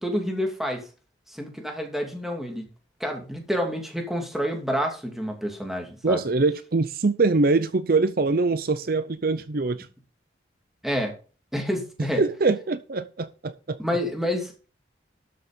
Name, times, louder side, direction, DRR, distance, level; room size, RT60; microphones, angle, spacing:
voice 1, 0.0-0.9 1.3-2.7 3.0-6.2 10.8-11.1 11.5-12.2 13.8-14.7, equal, ahead, 2.6 m, -28 dB
voice 2, 6.0-9.9 12.2-13.8, right 3 dB, 50° right, 0.6 m, -23 dB
12.5 x 6.4 x 5.1 m
head